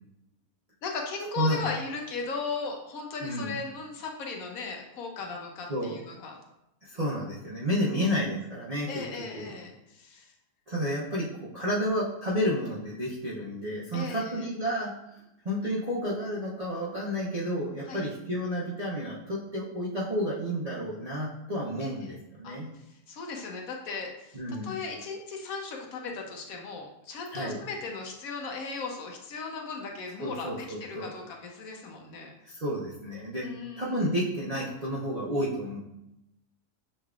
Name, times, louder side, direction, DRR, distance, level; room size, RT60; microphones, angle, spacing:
voice 1, 0.8-6.4 8.0-8.1 8.9-10.3 13.9-14.5 17.9-18.1 21.8-22.1 22.4-22.6 23.1-24.4 24.6-32.3 33.4-34.0, left 4 dB, 70° left, 1 dB, 1.1 m, -37 dB
voice 2, 3.2-3.6 5.7-5.9 6.9-9.0 9.3-9.5 10.7-22.7 24.3-24.8 27.3-27.6 30.2-31.1 32.4-33.5 33.8-35.8, equal, 45° right, -8 dB, 0.5 m, -31 dB
6.4 x 3.3 x 2.4 m, 0.87 s
omnidirectional pair, 1.6 m